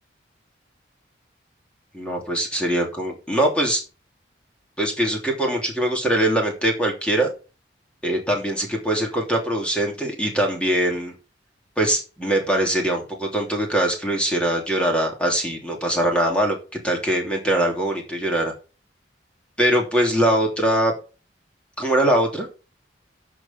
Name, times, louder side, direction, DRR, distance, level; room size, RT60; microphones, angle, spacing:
voice 1, 1.9-3.8 4.8-7.3 8.0-11.1 11.8-16.6 16.8-18.5 19.6-20.9 21.8-22.5, right 1 dB, 5° left, 0 dB, 2.9 m, -22 dB
13.0 x 4.9 x 5.9 m, 0.33 s
head